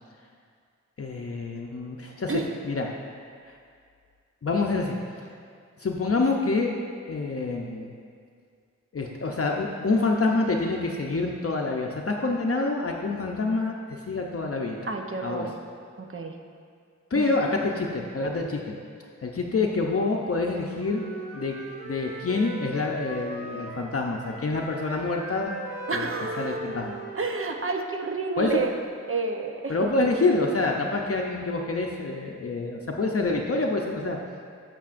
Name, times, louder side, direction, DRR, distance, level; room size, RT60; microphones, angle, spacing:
voice 1, 1.0-2.9 3.5-3.6 4.4-5.0 5.8-6.7 7.1-7.9 8.9-14.9 15.2-15.5 17.1-18.7 19.2-21.0 21.3-21.6 21.8-25.5 25.9-26.1 26.4-26.9 28.4-28.6 29.7-34.2, left 3 dB, 50° left, 0 dB, 0.6 m, -27 dB
voice 2, 14.9-15.5 16.1-16.4 17.1-17.3 25.9-26.6 27.2-28.7 29.1-29.9, right 3 dB, 45° right, 4 dB, 0.7 m, -30 dB
Wind instrument woodwind instrument, 20.3-24.0 24.2-28.2, right 1 dB, 85° right, 1.9 m, -38 dB
11.5 x 6.8 x 2.5 m, 2.2 s
wide cardioid pair, 75°, 29 cm